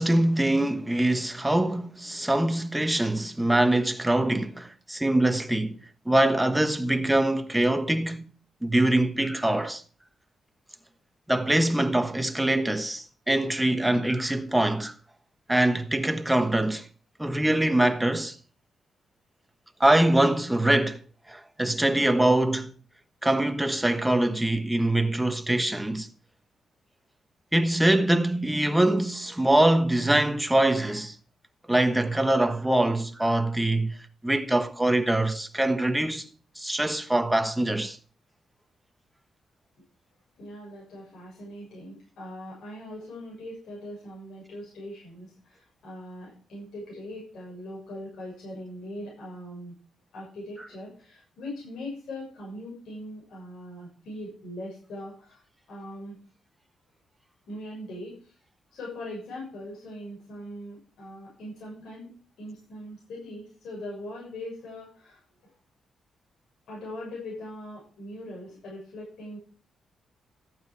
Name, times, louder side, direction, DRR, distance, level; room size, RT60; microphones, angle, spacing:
voice 1, 0.0-5.8 6.1-8.3 8.6-9.8 11.3-14.9 15.5-16.9 17.2-18.4 19.8-21.0 21.3-22.7 23.2-26.1 27.5-31.1 31.7-34.0 34.2-36.3 36.6-38.0, right 1 dB, 10° right, 1.3 m, -23 dB
voice 2, 40.4-49.7 50.1-55.4 55.7-56.2 57.5-58.3 58.7-62.1 62.4-65.2 66.7-69.4, left 1 dB, 75° left, 7.1 m, -40 dB
14.0 x 8.9 x 4.7 m
cardioid pair, 95°, 0 cm